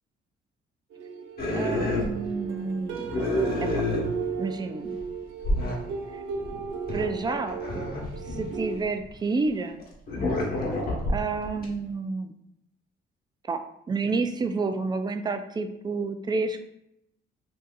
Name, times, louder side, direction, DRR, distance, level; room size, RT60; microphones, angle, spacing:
sound 1, 0.9-8.8, right 6 dB, 85° right, 0.5 m, -35 dB
sound 2, 1.4-2.6 2.9-4.6 5.0-5.1 5.4-5.8 6.3-9.1 9.8-11.7, left 1 dB, 50° left, 1.0 m, -29 dB
voice 1, 1.5-3.1 3.6-3.8 4.4-5.0 6.1-6.2 6.9-8.0 8.2-9.8 11.1-12.3 13.5-16.6, right 3 dB, 20° right, 7 dB, 0.3 m, -30 dB
2.7 x 2.5 x 3.8 m, 0.79 s
cardioid pair, 90°, 20 cm